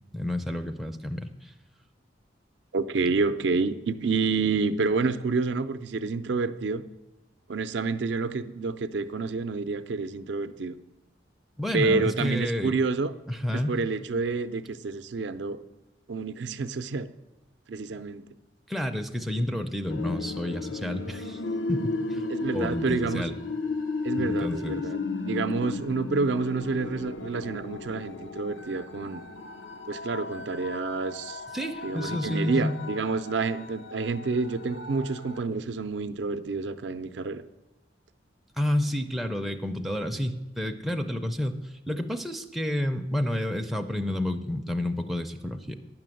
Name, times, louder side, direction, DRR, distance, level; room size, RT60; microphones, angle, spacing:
voice 1, 0.1-1.5 11.6-12.8 13.3-13.7 18.7-21.4 21.7-22.3 22.5-23.4 24.2-24.8 31.5-32.7 38.6-45.7, left 1 dB, ahead, 3 dB, 0.4 m, -30 dB
voice 2, 2.7-6.8 7.5-10.8 11.7-13.1 13.5-15.6 16.1-17.1 17.7-18.2 22.3-23.2 24.0-29.2 29.9-31.4 31.8-37.4, right 4 dB, 70° right, 12 dB, 0.5 m, -28 dB
sound 1, 19.9-35.4, left 3 dB, 90° left, 0.6 m, -35 dB
9.2 x 6.0 x 7.6 m, 0.98 s
head